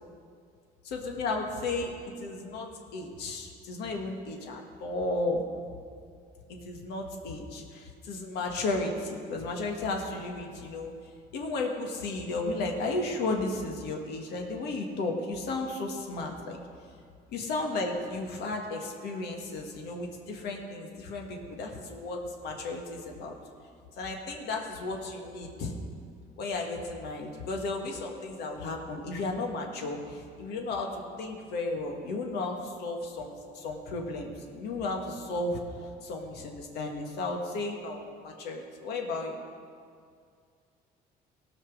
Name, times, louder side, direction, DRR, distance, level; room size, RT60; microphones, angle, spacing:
voice 1, 0.8-5.4 6.5-10.9 11.3-16.6 17.3-23.3 24.0-25.7 26.4-35.6 36.0-39.4, left 2 dB, 80° left, 1 dB, 1.6 m, -34 dB
17.5 x 6.0 x 6.2 m, 2.2 s
cardioid pair, 110°, 17 cm